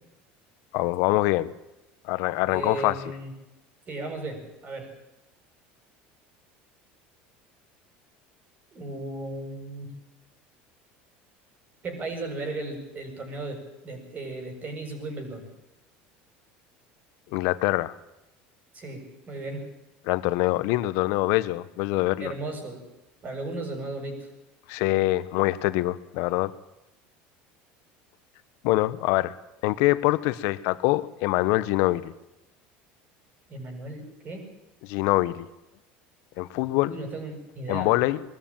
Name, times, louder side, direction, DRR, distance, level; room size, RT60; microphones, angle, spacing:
voice 1, 0.7-1.5 2.0-3.0 17.3-18.0 20.0-22.3 24.7-26.5 28.6-29.4 29.6-32.1 34.8-35.5 36.4-36.9 37.7-38.2, left 18 dB, 70° left, 15 dB, 1.2 m, -24 dB
voice 2, 2.5-3.3 3.9-4.9 8.7-9.9 11.8-15.5 18.7-19.7 22.2-22.8 23.2-24.3 33.5-34.4 36.9-37.9, right 2 dB, 35° right, 5 dB, 7.8 m, -35 dB
21.5 x 13.5 x 9.0 m, 0.97 s
supercardioid pair, 115°, 5 cm